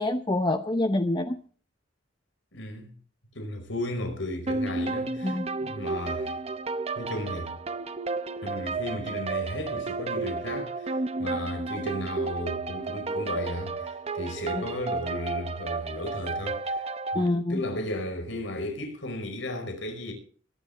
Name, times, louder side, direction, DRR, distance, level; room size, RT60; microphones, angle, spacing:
voice 1, 0.0-1.4 5.2-5.5 14.5-14.6 17.1-17.6, left 1 dB, 25° left, 0.9 m, -26 dB
voice 2, 2.5-2.9 3.3-6.3 7.0-7.5 8.4-16.8 17.1-20.1, left 1 dB, 75° left, 5.3 m, -35 dB
sound 1, 4.5-17.3, right 3 dB, 30° right, 0.7 m, -32 dB
22.0 x 11.5 x 3.5 m
head